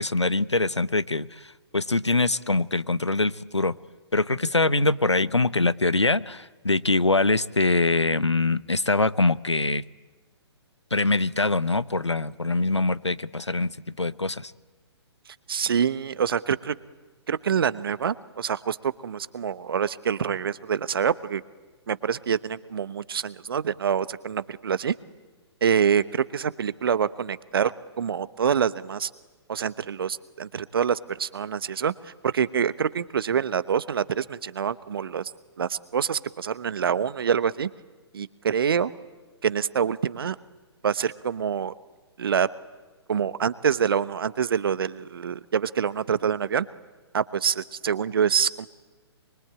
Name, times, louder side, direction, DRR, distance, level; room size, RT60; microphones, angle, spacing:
voice 1, 0.0-3.7 4.1-9.8 10.9-14.5, left 2 dB, 90° left, 17 dB, 0.9 m, -23 dB
voice 2, 15.5-16.7 17.3-21.4 21.9-24.9 25.6-29.1 29.5-35.3 35.6-37.7 38.1-38.9 39.4-40.4 40.8-41.7 42.2-42.5 43.1-46.7 47.1-48.7, right 7 dB, 55° right, 17 dB, 1.0 m, -26 dB
25.0 x 24.0 x 9.0 m, 1.3 s
figure-of-eight pair, 130°, 14 cm